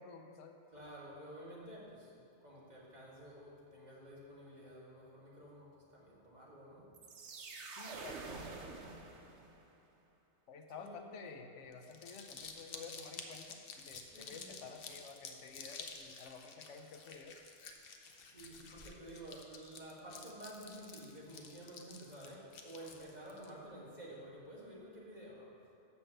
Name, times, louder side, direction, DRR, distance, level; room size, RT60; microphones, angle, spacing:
voice 1, 0.0-0.6 7.7-8.5 10.5-17.4, left 4 dB, 85° left, 5 dB, 1.0 m, -51 dB
voice 2, 0.7-6.9 10.8-11.1 14.1-14.5 18.2-25.5, right 1 dB, 35° right, -5 dB, 1.7 m, -51 dB
sound 1, 6.9-9.7, right 4 dB, 70° right, 1.1 m, -47 dB
Crumpling crinkling, 11.7-23.5, left 5 dB, 55° left, 0.8 m, -51 dB
7.2 x 5.7 x 6.7 m, 2.6 s
omnidirectional pair, 1.2 m